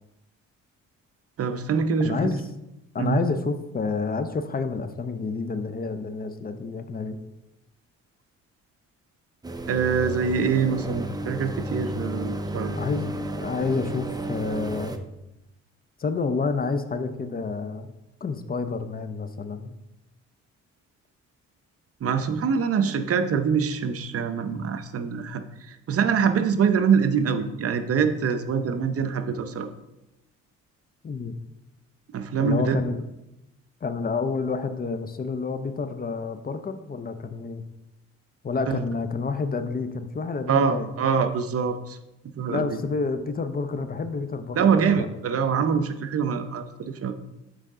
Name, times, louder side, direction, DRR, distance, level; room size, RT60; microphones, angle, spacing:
voice 1, 1.4-2.3 3.0-3.2 9.7-12.7 22.0-29.7 32.1-32.8 38.7-38.8 40.5-42.0 42.4-42.7 44.5-47.1, right 6 dB, 50° right, 8 dB, 0.7 m, -24 dB
voice 2, 2.0-2.4 2.9-7.2 12.7-15.0 16.0-17.9 18.2-19.7 31.0-31.3 32.4-33.0 33.8-37.6 38.4-40.9 42.5-45.1, left 4 dB, 30° left, 10 dB, 0.6 m, -29 dB
sound 1, 9.4-15.0, right 1 dB, 15° right, 0.6 m, -32 dB
7.7 x 4.8 x 3.7 m, 0.92 s
cardioid pair, 90°, 30 cm